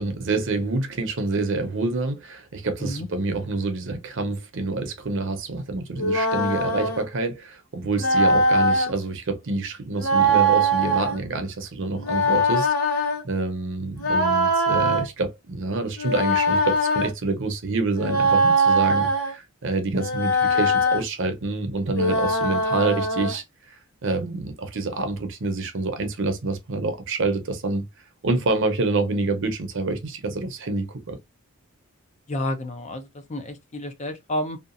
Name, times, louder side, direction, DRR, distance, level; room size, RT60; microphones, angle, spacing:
voice 1, 0.0-23.8 24.0-27.8 28.2-31.2, right 3 dB, 60° right, 0.7 m, -27 dB
sound 1, 6.0-7.0 7.9-8.9 10.0-11.2 12.0-13.2 14.0-15.0 16.0-17.1 18.0-19.3 20.0-21.0 21.9-23.4, right 1 dB, 80° left, 1.5 m, -21 dB
voice 2, 32.3-34.6, left 1 dB, 30° left, 0.4 m, -30 dB
2.8 x 2.3 x 2.5 m
head